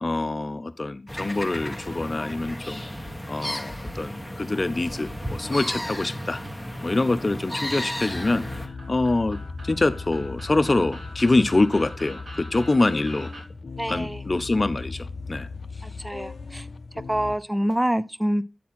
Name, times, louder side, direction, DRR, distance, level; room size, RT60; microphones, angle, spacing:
voice 1, 0.0-2.8 3.3-6.4 6.8-8.6 8.9-13.3 13.9-15.5, left 2 dB, 45° left, 0.7 m, -25 dB
sound 1, 1.1-8.7, equal, 5° left, 1.2 m, -33 dB
sound 2, 6.9-13.4, right 1 dB, 60° right, 2.9 m, -44 dB
sound 3, 8.1-17.4, left 4 dB, 85° left, 0.5 m, -38 dB
voice 2, 13.8-14.2 15.8-16.7 17.1-18.4, equal, 10° right, 0.5 m, -26 dB
8.4 x 4.3 x 4.3 m
wide cardioid pair, 65°, 0 cm